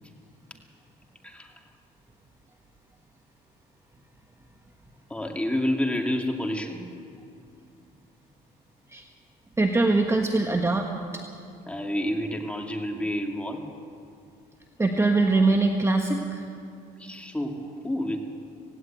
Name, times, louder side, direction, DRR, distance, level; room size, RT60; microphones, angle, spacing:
voice 1, 1.2-1.7 5.1-6.9 11.7-13.7 17.0-18.2, left 1 dB, 5° left, 2 dB, 2.4 m, -29 dB
voice 2, 9.6-10.9 11.1-11.2 14.8-16.4, right 3 dB, 15° right, 3 dB, 1.3 m, -22 dB
17.5 x 17.0 x 9.1 m, 2.4 s
cardioid pair, 110°, 17 cm